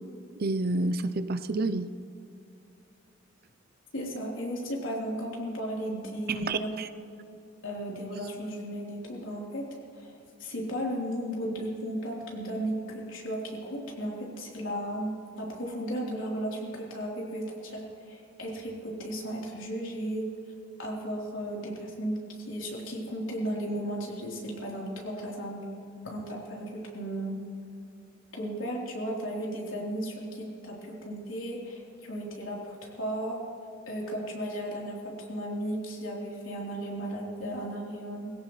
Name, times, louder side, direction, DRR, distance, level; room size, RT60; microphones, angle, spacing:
voice 1, 0.4-1.9 6.3-6.9, right 2 dB, 50° right, 12 dB, 0.6 m, -29 dB
voice 2, 3.9-6.8 7.6-9.6 10.0-10.1 10.4-20.3 20.8-25.7 26.0-27.4 28.3-33.4 33.9-38.3, right 1 dB, 80° left, -3 dB, 3.8 m, -35 dB
21.0 x 17.0 x 3.2 m, 2.6 s
head